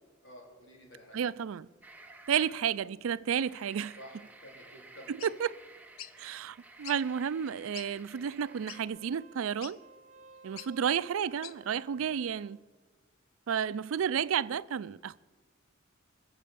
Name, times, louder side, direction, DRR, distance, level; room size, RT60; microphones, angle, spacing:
voice 1, 0.2-1.2 4.0-5.1 11.9-12.1, equal, 60° left, 4.0 m, -51 dB
voice 2, 1.1-1.7 2.3-4.0 5.1-5.5 6.2-9.8 10.4-12.6 13.5-15.2, right 8 dB, 75° right, 0.4 m, -31 dB
sound 1, 1.8-2.8 3.3-8.9, right 2 dB, 10° right, 0.8 m, -54 dB
sound 2, 5.2-5.3 6.0-6.1 6.8-7.0 7.5-7.6 7.7-7.9 8.7-8.8 9.6-9.8 10.6-10.7 11.4-11.6, left 11 dB, 75° left, 0.6 m, -44 dB
Wind instrument woodwind instrument, 8.3-12.6, right 4 dB, 35° right, 1.4 m, -56 dB
20.0 x 7.5 x 6.9 m
head